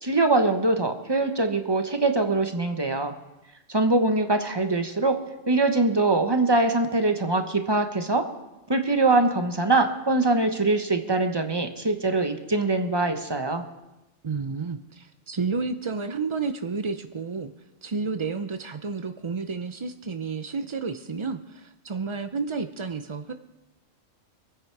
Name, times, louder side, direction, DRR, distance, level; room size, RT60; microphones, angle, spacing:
voice 1, 0.0-3.1 3.7-5.2 5.5-8.2 8.7-13.6, right 2 dB, 20° right, 6 dB, 1.1 m, -23 dB
voice 2, 14.2-17.5 17.8-23.3, right 4 dB, 50° right, 8 dB, 0.3 m, -31 dB
25.0 x 9.3 x 4.7 m, 0.98 s
omnidirectional pair, 1.4 m